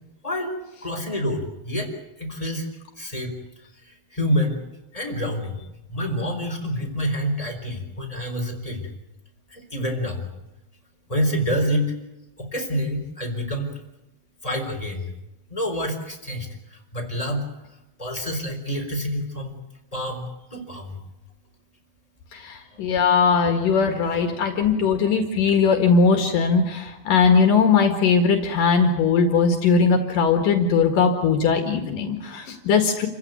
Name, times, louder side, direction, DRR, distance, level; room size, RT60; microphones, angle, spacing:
voice 1, 0.2-2.7 3.0-4.6 4.9-5.6 5.9-8.9 9.5-10.3 11.1-11.9 12.4-13.7 14.4-15.1 15.5-17.5 18.0-19.6 19.9-21.0 22.7-22.9, equal, 10° left, 2 dB, 4.0 m, -28 dB
voice 2, 22.3-33.1, left 5 dB, 65° left, 5 dB, 3.4 m, -19 dB
28.5 x 15.5 x 9.5 m, 0.95 s
omnidirectional pair, 4.2 m